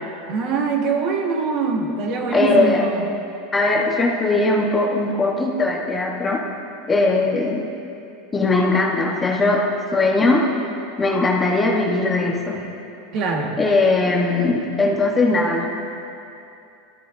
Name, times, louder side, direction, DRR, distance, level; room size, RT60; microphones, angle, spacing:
voice 1, 0.3-3.1 13.1-13.6, right 4 dB, 45° right, 1 dB, 1.6 m, -23 dB
voice 2, 2.3-2.8 3.5-6.4 6.9-7.7 8.3-9.7 9.9-10.5 11.0-12.6 13.6-15.7, left 2 dB, 15° left, -1 dB, 1.2 m, -19 dB
19.5 x 13.0 x 2.7 m, 2.7 s
supercardioid pair, 150°, 0 cm